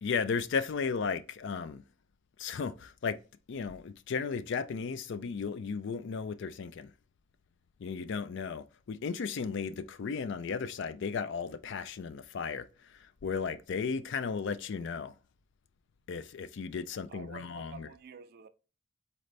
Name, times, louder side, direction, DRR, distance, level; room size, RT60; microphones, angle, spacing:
voice 1, 0.0-1.8 2.4-3.2 3.5-6.9 7.8-15.1 16.1-17.9, left 5 dB, 60° left, 0.4 m, -35 dB
voice 2, 17.1-18.5, right 5 dB, 50° right, 0.4 m, -49 dB
4.1 x 3.3 x 4.0 m
head